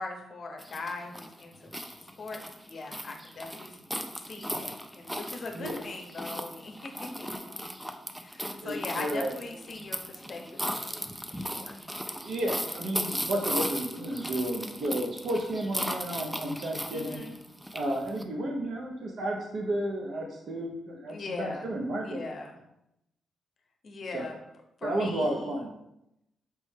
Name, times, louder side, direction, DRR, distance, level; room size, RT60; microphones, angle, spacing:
voice 1, 0.0-1.7 2.2-3.8 4.3-7.5 8.2-11.0 11.3-11.7 16.9-17.3 21.1-21.7 22.0-22.6 23.8-24.4 24.8-25.5, left 3 dB, 50° left, 2 dB, 0.6 m, -40 dB
sound 1, 0.6-18.2, equal, 5° right, 0.3 m, -37 dB
voice 2, 8.6-9.4 12.1-17.2 17.7-22.2 24.1-24.3 24.8-25.7, right 1 dB, 65° right, 0 dB, 0.5 m, -32 dB
4.5 x 2.1 x 3.2 m, 0.83 s
cardioid pair, 90°, 0 cm